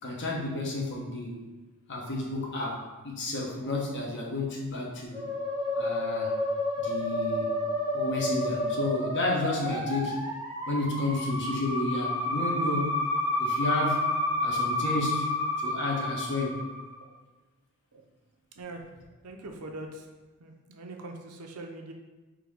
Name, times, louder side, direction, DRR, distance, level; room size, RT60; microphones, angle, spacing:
voice 1, 0.0-1.3 1.9-5.2 5.8-6.3 6.8-7.5 7.9-10.1 10.7-12.9 13.4-14.0 14.4-15.2 15.6-16.6, left 2 dB, 55° left, -2 dB, 1.0 m, -31 dB
Musical instrument, 5.1-16.9, left 1 dB, 20° right, 1.3 m, -30 dB
voice 2, 19.2-20.1 20.4-21.9, right 2 dB, 80° right, 3 dB, 0.7 m, -42 dB
3.8 x 2.9 x 4.8 m, 1.2 s
head